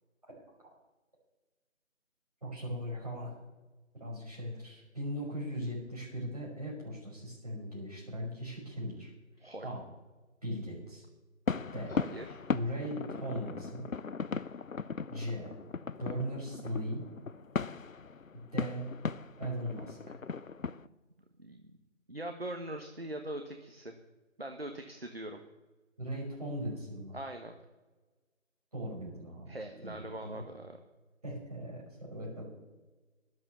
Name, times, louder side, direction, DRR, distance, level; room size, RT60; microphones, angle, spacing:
voice 1, 2.4-3.3 4.0-9.1 9.6-9.8 10.4-11.0 11.7-12.0 12.5-13.9 15.1-15.5 16.0-17.0 18.5-18.9 19.4-20.1 26.0-27.2 28.7-30.0 30.2-30.4 31.2-32.4, equal, 30° right, -5 dB, 5.2 m, -38 dB
voice 2, 9.4-9.7 11.9-12.4 21.4-21.7 22.1-23.9 24.4-25.4 27.1-27.5 29.5-30.8, right 1 dB, 45° right, 5 dB, 1.2 m, -42 dB
sound 1, 11.5-20.9, left 5 dB, 75° left, 0.7 m, -38 dB
12.0 x 11.0 x 6.9 m, 1.2 s
figure-of-eight pair, 170°, 40 cm